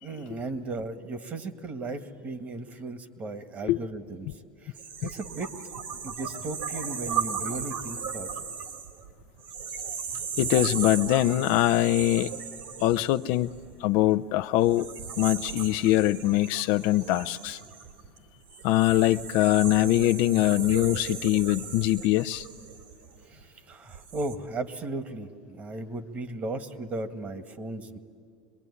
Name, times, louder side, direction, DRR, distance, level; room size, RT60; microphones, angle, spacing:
voice 1, 0.0-4.3 4.6-4.7 5.0-5.5 6.0-8.4 23.3-28.0, right 2 dB, 35° right, 1.8 m, -36 dB
sound 1, 4.7-14.0 14.6-23.3 23.8-24.3, right 6 dB, 70° right, 3.5 m, -36 dB
voice 2, 10.4-12.4 12.8-14.9 15.2-17.6 18.6-22.4, left 15 dB, 65° left, 0.6 m, -23 dB
26.0 x 21.5 x 9.8 m
hypercardioid pair, 95°, 4 cm